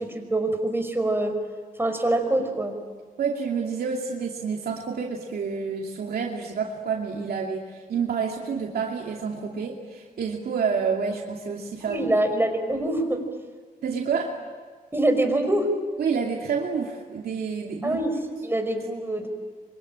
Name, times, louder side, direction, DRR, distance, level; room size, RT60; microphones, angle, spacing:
voice 1, 0.0-1.4 1.8-2.8 11.8-13.2 14.9-15.7 17.8-19.3, right 1 dB, 15° right, 4 dB, 5.3 m, -25 dB
voice 2, 3.2-12.1 13.8-14.4 16.0-18.0, right 6 dB, 80° right, -1 dB, 2.6 m, -28 dB
25.5 x 24.0 x 8.9 m, 1.5 s
cardioid pair, 90°, 16 cm